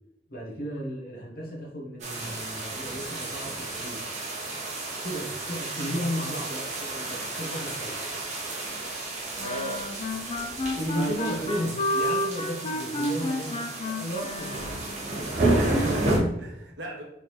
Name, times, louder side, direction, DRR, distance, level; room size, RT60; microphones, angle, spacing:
voice 1, 0.3-4.0 5.0-8.0 10.6-14.7, equal, 55° left, -3 dB, 1.2 m, -34 dB
sound 1, 2.0-16.2, right 2 dB, 40° right, 1.0 m, -31 dB
sound 2, 9.4-15.1, left 1 dB, 30° left, 0.5 m, -31 dB
voice 2, 9.4-9.9 10.9-11.6 15.3-17.0, right 1 dB, 85° right, 1 dB, 1.1 m, -36 dB
4.3 x 3.8 x 3.2 m, 0.86 s
head